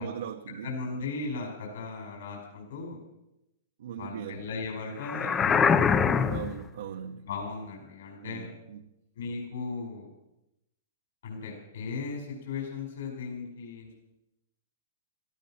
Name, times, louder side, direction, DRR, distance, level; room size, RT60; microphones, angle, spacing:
voice 1, 0.0-0.7 3.8-4.4 6.3-7.2 8.2-8.8, right 8 dB, 70° right, 5 dB, 1.0 m, -39 dB
voice 2, 0.6-3.0 3.9-6.3 7.2-8.5 9.2-10.1 11.2-13.9, left 4 dB, 65° left, 1 dB, 5.2 m, -37 dB
sound 1, 5.0-6.6, left 6 dB, 15° left, 0.6 m, -23 dB
17.0 x 14.5 x 5.8 m, 0.89 s
hypercardioid pair, 165°, 0 cm